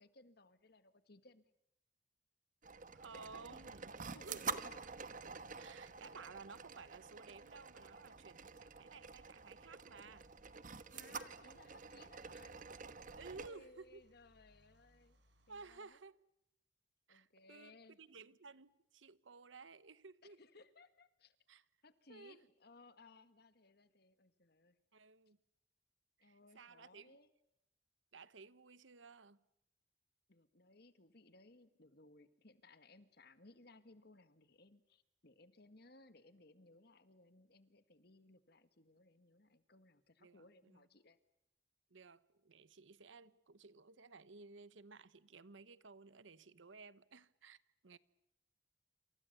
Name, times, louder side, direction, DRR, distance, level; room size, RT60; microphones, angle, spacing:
voice 1, 0.0-1.5 4.1-4.7 10.9-12.6 13.4-15.2 15.5-16.0 17.1-18.0 20.2-21.4 21.8-24.8 26.2-27.3 30.3-41.2, left 2 dB, 55° left, 1.8 m, -63 dB
sound 1, 2.6-13.5, right 5 dB, 45° right, 1.2 m, -48 dB
voice 2, 3.0-4.8 5.3-10.3 13.1-14.0 15.5-16.2 17.1-20.4 21.5-21.6 22.1-22.4 24.9-25.4 26.2-27.2 28.1-29.4 40.2-40.9 41.9-48.0, right 4 dB, 85° right, 1.0 m, -56 dB
Car / Engine starting / Idling, 8.9-15.8, right 1 dB, 70° right, 5.1 m, -75 dB
28.0 x 27.5 x 6.8 m
head